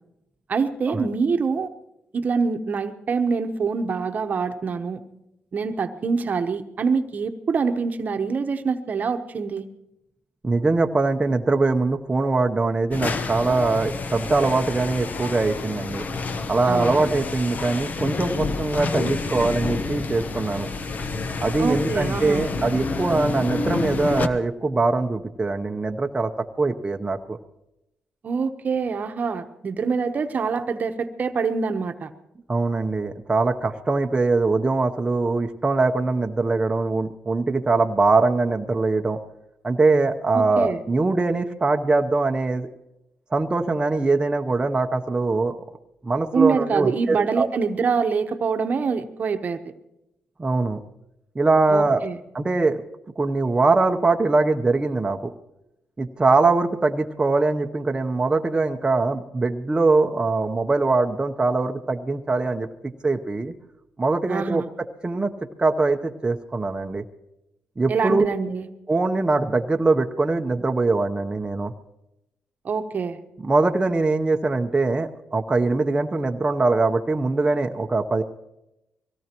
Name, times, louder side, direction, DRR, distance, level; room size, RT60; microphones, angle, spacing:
voice 1, 0.5-1.7 2.1-5.0 5.5-9.6 16.7-17.1 21.6-22.5 28.2-32.1 40.3-40.8 46.3-49.6 51.7-52.2 64.3-64.7 67.9-68.7 72.6-73.2, right 5 dB, 50° right, 7 dB, 1.0 m, -25 dB
voice 2, 10.4-16.0 16.5-20.7 21.4-26.3 26.6-27.4 32.5-39.2 39.6-42.7 43.3-45.6 46.0-47.5 50.4-50.8 51.3-52.1 52.3-52.8 53.2-55.3 56.0-62.7 63.0-63.5 64.0-64.6 65.0-65.3 65.6-67.0 67.8-68.3 68.9-71.7 73.4-78.2, right 3 dB, 20° right, 3 dB, 0.8 m, -22 dB
sound 1, 12.9-24.3, left 3 dB, 45° left, 1.0 m, -29 dB
23.0 x 17.0 x 3.0 m, 0.88 s
cardioid pair, 80°, 4 cm